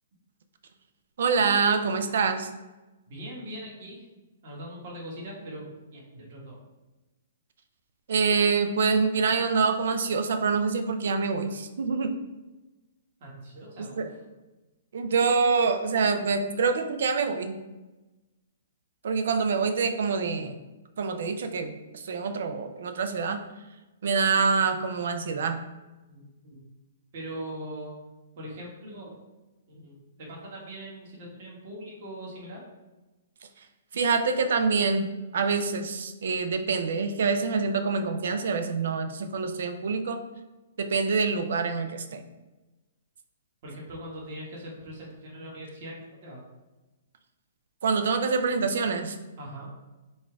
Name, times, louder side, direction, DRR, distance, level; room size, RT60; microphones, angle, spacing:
voice 1, 1.2-2.5 8.1-12.1 13.8-14.0 14.9-17.6 19.0-20.6 21.0-23.4 24.0-25.6 33.9-40.2 40.8-42.2 47.8-49.2, right 5 dB, 70° right, 8 dB, 0.5 m, -26 dB
voice 2, 3.1-4.1 4.4-6.6 13.2-14.2 26.1-26.6 27.1-27.9 28.4-29.1 29.7-32.6 43.6-46.4 49.4-49.7, right 1 dB, 50° right, -3 dB, 1.4 m, -41 dB
4.3 x 2.3 x 4.5 m, 1.1 s
hypercardioid pair, 145°, 0 cm